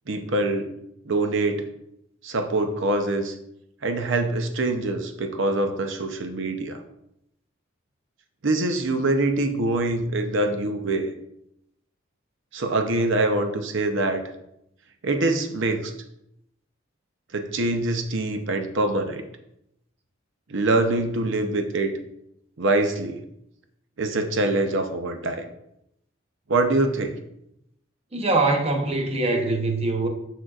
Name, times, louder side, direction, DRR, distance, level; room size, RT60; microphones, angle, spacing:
voice 1, 0.1-0.7 1.1-1.7 2.2-3.3 3.8-6.8 8.4-11.1 12.5-14.2 15.0-15.9 17.3-19.2 20.5-22.0 22.6-23.2 24.0-25.5 26.5-27.1, right 2 dB, 65° right, 6 dB, 0.7 m, -24 dB
voice 2, 28.1-30.1, right 2 dB, 30° right, 3 dB, 0.7 m, -23 dB
6.4 x 6.2 x 2.4 m, 0.79 s
head